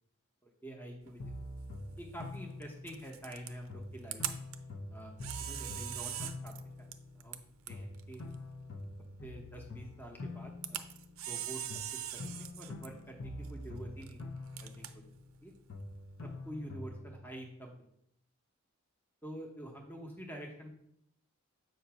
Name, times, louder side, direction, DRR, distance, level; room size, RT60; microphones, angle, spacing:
voice 1, 0.4-1.3 2.0-4.2 4.9-5.1 5.4-6.5 6.8-6.9 7.1-7.4 7.7-8.3 9.2-10.8 11.3-11.6 11.9-14.2 14.6-15.1 15.4-15.5 16.2-17.9 19.2-20.7, right 1 dB, 10° left, 1 dB, 0.8 m, -47 dB
Camera, 1.0-16.5, right 11 dB, 70° right, 0.5 m, -45 dB
sound 1, 1.2-3.3 3.7-7.4 7.7-11.4 11.7-15.4 15.7-17.3, left 2 dB, 65° left, 0.6 m, -45 dB
7.6 x 2.6 x 5.7 m, 0.71 s
head